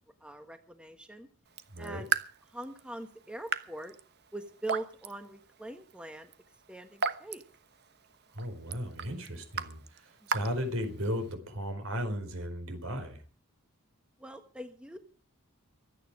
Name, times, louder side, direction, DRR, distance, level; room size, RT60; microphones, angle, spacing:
voice 1, 0.2-1.3 1.8-2.1 2.5-3.9 4.3-6.3 6.7-7.4 14.2-15.0, right 1 dB, 5° right, 7 dB, 1.3 m, -42 dB
Raindrop / Drip, 1.4-11.3, right 6 dB, 50° right, 1.1 m, -39 dB
voice 2, 1.7-2.0 8.3-13.2, equal, 70° right, 7 dB, 4.6 m, -35 dB
24.5 x 9.4 x 4.9 m, 0.37 s
head